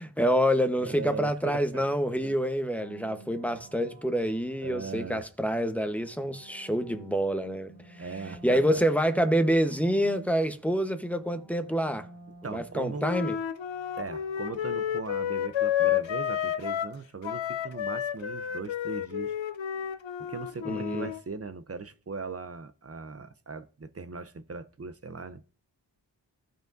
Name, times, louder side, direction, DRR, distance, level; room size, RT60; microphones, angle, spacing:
voice 1, 0.0-8.0 8.4-12.1 12.4-13.3 20.6-21.1, equal, 5° left, 1.0 m, -27 dB
voice 2, 0.8-2.4 4.6-5.3 8.0-8.8 12.4-13.1 14.0-19.3 20.3-25.4, right 4 dB, 35° right, 0.6 m, -39 dB
sound 1, 2.8-5.2 5.8-10.7 11.0-15.9, right 1 dB, 60° right, 2.2 m, -50 dB
Wind instrument woodwind instrument, 13.0-17.0 17.2-21.2, left 10 dB, 85° left, 0.6 m, -31 dB
15.0 x 5.1 x 2.6 m
cardioid pair, 40°, 44 cm